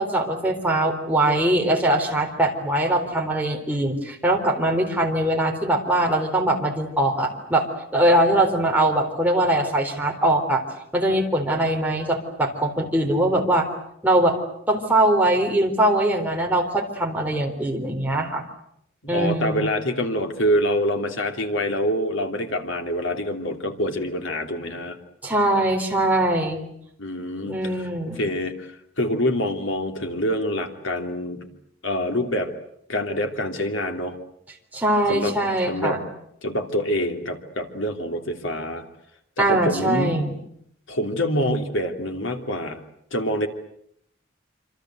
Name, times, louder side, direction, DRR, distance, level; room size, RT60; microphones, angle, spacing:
voice 1, 0.0-7.7 7.9-10.6 10.9-13.7 14.0-14.4 14.7-18.4 19.1-19.7 25.2-26.6 27.4-28.3 34.7-36.0 39.4-40.3, right 1 dB, 10° right, 0 dB, 4.0 m, -22 dB
voice 2, 19.0-25.0 27.0-27.9 28.2-31.5 31.8-32.5 32.9-34.2 35.1-35.3 35.7-36.0 36.4-38.8 39.4-40.2 40.9-42.8 43.1-43.5, equal, 80° left, 5 dB, 3.0 m, -26 dB
26.5 x 26.5 x 8.0 m, 0.73 s
head